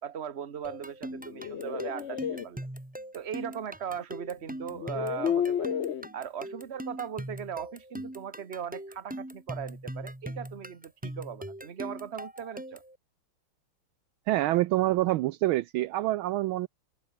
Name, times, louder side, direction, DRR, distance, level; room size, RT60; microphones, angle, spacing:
voice 1, 0.0-2.7 3.1-5.8 6.1-12.8, right 8 dB, 35° right, 1.4 m, -38 dB
sound 1, 0.6-13.0, right 1 dB, 5° right, 1.3 m, -41 dB
sound 2, 1.1-2.4 3.9-4.0 4.7-6.1, left 9 dB, 85° left, 0.6 m, -31 dB
voice 2, 14.3-16.7, right 16 dB, 75° right, 1.3 m, -26 dB
open air
omnidirectional pair, 2.4 m